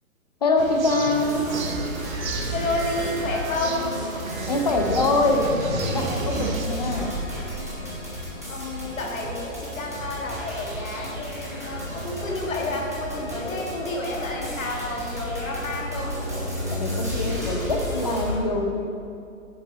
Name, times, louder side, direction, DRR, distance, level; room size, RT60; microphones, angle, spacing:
voice 1, 0.4-1.4 4.5-5.5 5.9-7.1 16.7-18.9, left 2 dB, 30° left, 3 dB, 0.7 m, -24 dB
sound 1, 0.6-6.7, right 5 dB, 75° right, 0.9 m, -33 dB
sound 2, 1.2-18.3, equal, 15° right, 0.5 m, -32 dB
voice 2, 2.5-3.9 8.2-16.2, left 2 dB, 65° left, -1 dB, 1.8 m, -30 dB
7.9 x 6.9 x 4.0 m, 2.5 s
hypercardioid pair, 165°, 42 cm